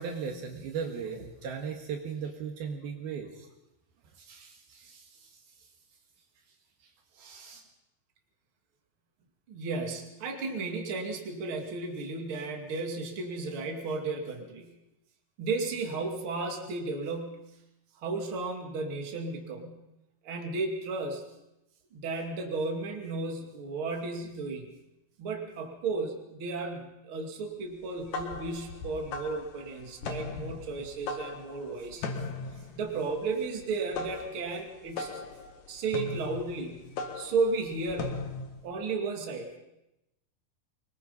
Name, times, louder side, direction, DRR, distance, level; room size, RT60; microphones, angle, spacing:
voice 1, 0.0-3.5 4.2-5.4 7.2-7.6, right 6 dB, 75° right, 2 dB, 3.6 m, -38 dB
voice 2, 9.5-14.7 15.4-17.6 18.0-19.8 20.2-21.2 21.9-24.7 25.2-32.1 32.8-35.2 35.7-36.9 37.1-38.2 38.6-39.6, right 3 dB, 35° right, 3 dB, 2.8 m, -34 dB
sound 1, 27.8-38.6, left 3 dB, 60° left, 3.2 m, -39 dB
24.5 x 21.0 x 5.5 m, 0.91 s
omnidirectional pair, 4.5 m